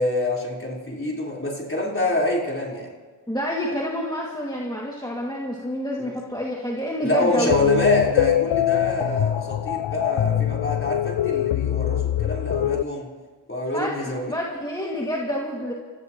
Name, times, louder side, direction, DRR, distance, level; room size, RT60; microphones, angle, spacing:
voice 1, 0.0-2.9 6.0-6.1 7.0-13.1 13.5-14.3, left 1 dB, 25° left, -3 dB, 4.6 m, -26 dB
voice 2, 3.3-7.6 13.7-15.7, equal, 10° left, -4 dB, 2.4 m, -28 dB
sound 1, 7.5-12.8, left 12 dB, 65° left, 0.5 m, -23 dB
29.5 x 15.0 x 3.2 m, 1.5 s
cardioid pair, 55°, 48 cm